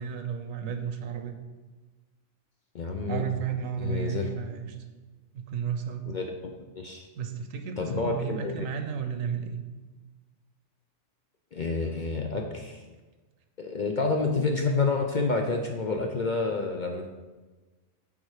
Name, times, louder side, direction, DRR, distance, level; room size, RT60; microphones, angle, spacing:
voice 1, 0.0-1.4 3.1-4.8 5.3-6.1 7.2-9.6, right 7 dB, 85° right, 6 dB, 1.2 m, -33 dB
voice 2, 2.7-3.2 3.8-4.3 6.1-7.1 7.8-8.5 11.5-12.8 13.6-17.1, left 3 dB, 50° left, 2 dB, 0.6 m, -29 dB
8.8 x 3.9 x 4.8 m, 1.3 s
omnidirectional pair, 1.3 m